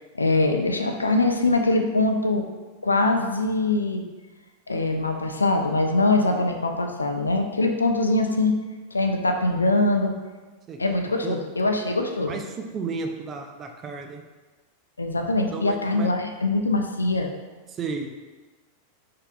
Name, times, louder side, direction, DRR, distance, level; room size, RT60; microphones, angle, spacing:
voice 1, 0.1-2.4 2.8-4.1 4.7-8.5 8.9-10.1 10.8-12.3 15.0-17.3, left 2 dB, 80° left, 4 dB, 0.4 m, -23 dB
voice 2, 10.7-11.4 12.2-14.2 15.5-16.1 17.7-18.1, right 4 dB, 25° right, 4 dB, 0.5 m, -34 dB
5.3 x 3.8 x 2.3 m, 1.3 s
figure-of-eight pair, 90°, 0 cm